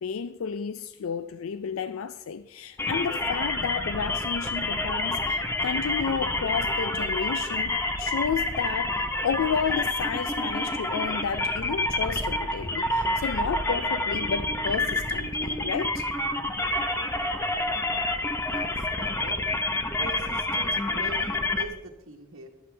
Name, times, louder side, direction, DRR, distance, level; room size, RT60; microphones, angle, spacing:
voice 1, 0.0-16.1, left 6 dB, 90° left, 0.4 m, -32 dB
sound 1, 2.8-21.6, left 2 dB, 10° left, 0.7 m, -28 dB
voice 2, 18.5-19.4 20.0-22.5, right 3 dB, 75° right, 1.2 m, -42 dB
14.0 x 12.0 x 3.3 m
head